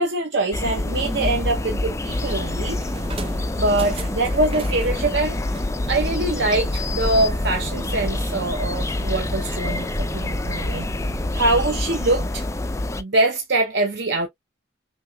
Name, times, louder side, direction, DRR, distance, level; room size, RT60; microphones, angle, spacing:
voice 1, 0.0-2.8 3.6-5.4 5.9-9.9 10.1-10.9 11.3-12.5 13.0-14.3, right 2 dB, 55° right, 0.8 m, -23 dB
sound 1, 0.5-13.0, left 2 dB, 15° left, 0.3 m, -26 dB
sound 2, 2.1-11.7, right 2 dB, 25° right, 0.6 m, -36 dB
6.3 x 2.7 x 2.3 m
head